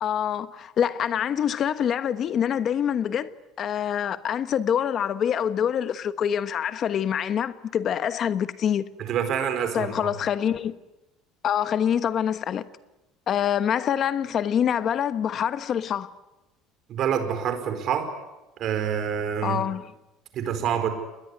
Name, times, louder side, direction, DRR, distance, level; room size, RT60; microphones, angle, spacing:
voice 1, 0.0-8.9 9.7-10.8 11.4-12.6 13.3-16.1 19.4-19.9, left 9 dB, 35° left, 1.2 m, -25 dB
voice 2, 9.1-10.1 16.9-18.1 18.6-19.6 20.3-20.9, right 8 dB, 40° right, 4.5 m, -26 dB
29.0 x 21.0 x 9.7 m
cardioid pair, 165°, 0 cm